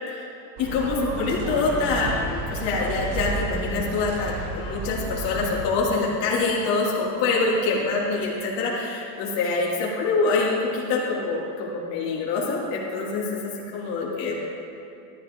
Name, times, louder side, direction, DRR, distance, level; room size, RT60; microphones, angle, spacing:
voice 1, 0.6-14.4, left 3 dB, 65° left, -5 dB, 2.8 m, -25 dB
sound 1, 0.6-5.7, right 3 dB, 55° right, 2.1 m, -32 dB
13.5 x 11.0 x 3.8 m, 2.7 s
cardioid pair, 150°, 41 cm